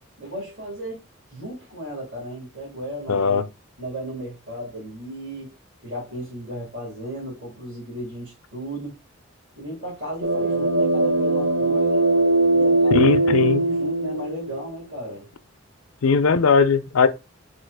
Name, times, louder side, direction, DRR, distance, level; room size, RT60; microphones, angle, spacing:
voice 1, 0.2-1.0 1.3-3.4 3.8-5.6 5.8-9.0 9.6-12.1 12.5-15.3, equal, 65° right, 2.2 m, -35 dB
voice 2, 3.1-3.4 12.9-13.6 16.0-17.1, left 5 dB, 80° left, 0.5 m, -18 dB
sound 1, 10.2-14.7, right 2 dB, 80° right, 0.6 m, -20 dB
4.3 x 2.4 x 4.7 m
head